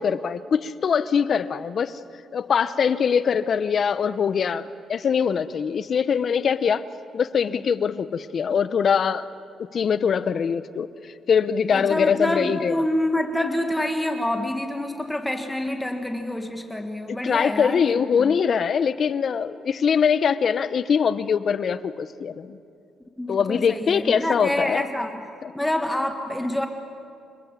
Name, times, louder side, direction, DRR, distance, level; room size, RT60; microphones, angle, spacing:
voice 1, 0.0-2.0 2.3-6.8 7.1-9.2 9.7-12.8 17.1-22.6 23.3-24.8 25.4-25.5, left 6 dB, 50° left, 14 dB, 0.9 m, -23 dB
voice 2, 11.7-18.3 23.2-25.2 25.5-26.7, left 1 dB, 10° left, 5 dB, 1.6 m, -27 dB
27.5 x 20.0 x 7.5 m, 2.5 s
cardioid pair, 90°, 0 cm